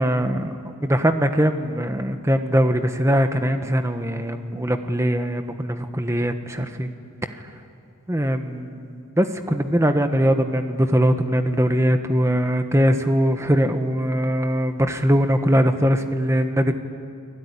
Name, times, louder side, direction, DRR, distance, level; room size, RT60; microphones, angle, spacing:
voice 1, 0.0-6.9 8.1-16.7, equal, 15° right, 7 dB, 1.3 m, -21 dB
29.5 x 20.0 x 9.9 m, 2.3 s
head